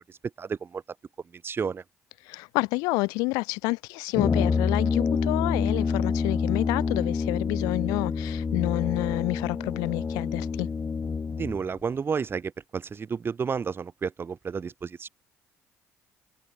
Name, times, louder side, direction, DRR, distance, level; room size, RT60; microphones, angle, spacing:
voice 1, 0.1-0.8 1.4-1.8 11.4-15.1, right 6 dB, 40° right, 1.2 m, -31 dB
voice 2, 2.2-10.7, left 26 dB, 85° left, 1.0 m, -29 dB
Brass instrument, 4.1-11.6, left 5 dB, 30° left, 0.6 m, -27 dB
supercardioid pair, 70°, 6 cm